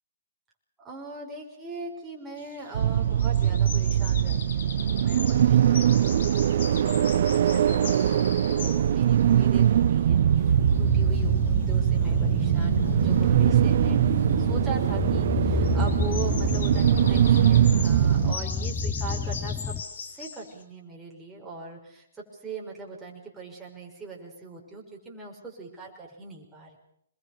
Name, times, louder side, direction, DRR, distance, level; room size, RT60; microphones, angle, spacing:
voice 1, 0.8-14.0 14.3-19.7 20.1-26.8, right 3 dB, 10° right, -3 dB, 5.9 m, -40 dB
sound 1, 2.4-20.6, left 5 dB, 65° left, 3.9 m, -41 dB
sound 2, 2.7-18.3, right 10 dB, 55° right, 0.9 m, -22 dB
sound 3, 10.4-19.8, left 4 dB, 15° left, 1.2 m, -30 dB
26.0 x 22.0 x 6.8 m, 0.71 s
hypercardioid pair, 135°, 0 cm